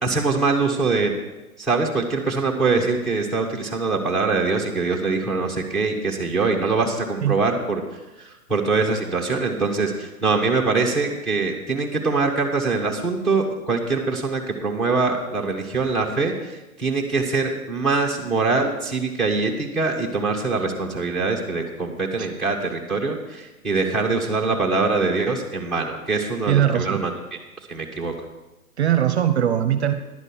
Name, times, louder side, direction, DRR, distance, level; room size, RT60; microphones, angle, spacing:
voice 1, 0.0-1.1 1.6-7.8 8.2-27.1 27.7-28.1, right 3 dB, ahead, -3 dB, 1.0 m, -23 dB
voice 2, 26.5-27.0 28.8-29.9, right 10 dB, 45° right, 9 dB, 0.8 m, -20 dB
10.5 x 5.4 x 8.2 m, 1.1 s
hypercardioid pair, 140°, 45 cm